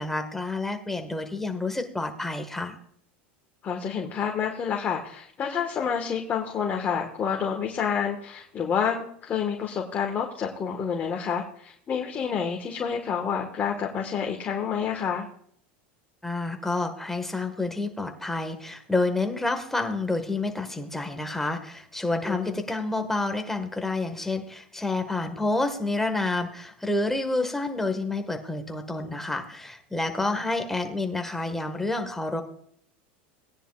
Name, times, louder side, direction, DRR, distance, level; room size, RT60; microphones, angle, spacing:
voice 1, 0.0-2.7 16.2-32.4, left 2 dB, 5° left, 5 dB, 1.6 m, -29 dB
voice 2, 3.6-15.3 22.2-22.6, left 7 dB, 30° left, 1 dB, 1.5 m, -29 dB
18.0 x 10.0 x 2.4 m, 0.65 s
hypercardioid pair, 105°, 6 cm